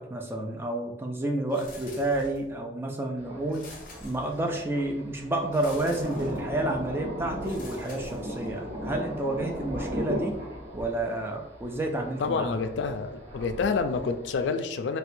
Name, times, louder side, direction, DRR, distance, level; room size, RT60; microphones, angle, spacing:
voice 1, 0.0-3.7 4.0-10.4 10.7-12.5, right 1 dB, 15° right, 1 dB, 0.3 m, -30 dB
sound 1, 1.5-2.6 3.5-4.7 5.5-6.5 7.4-8.7, left 2 dB, 45° left, 0.6 m, -47 dB
Thunder, 3.2-14.5, equal, 65° right, 0.9 m, -38 dB
voice 2, 12.2-15.0, left 4 dB, 80° left, 9 dB, 0.3 m, -28 dB
4.2 x 2.2 x 2.6 m, 0.88 s
head